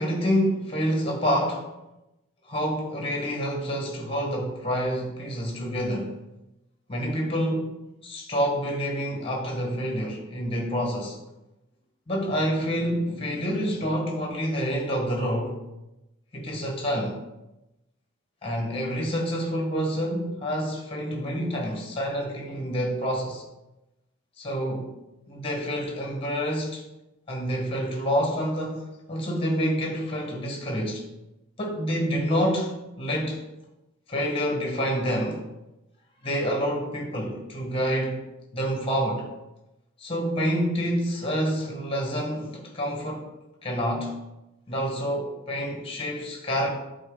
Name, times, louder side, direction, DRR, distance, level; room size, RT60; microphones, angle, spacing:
voice 1, 0.0-1.7 2.4-6.2 6.9-7.7 8.0-11.2 12.1-15.5 16.3-17.2 18.4-23.4 24.4-24.9 25.3-26.8 27.3-31.0 31.6-33.4 34.1-35.4 36.2-38.3 38.5-39.3 40.0-43.3 43.6-44.2 44.7-46.7, equal, 25° left, 0 dB, 1.6 m, -27 dB
10.5 x 4.2 x 3.9 m, 0.95 s
head